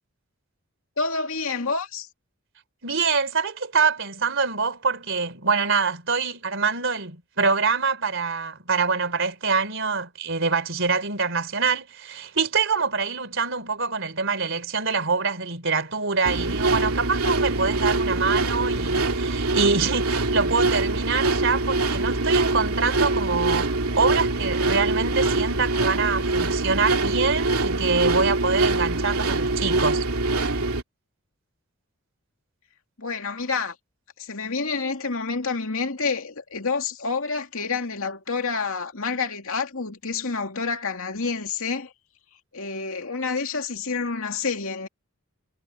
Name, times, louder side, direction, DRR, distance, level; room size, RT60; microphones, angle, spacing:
voice 1, 1.0-2.1 33.0-33.8 34.2-41.9 42.5-44.9, left 4 dB, 65° left, 2.6 m, -28 dB
voice 2, 2.8-30.1, right 4 dB, 55° right, 3.9 m, -25 dB
sound 1, 16.2-30.8, right 2 dB, 80° right, 2.7 m, -24 dB
head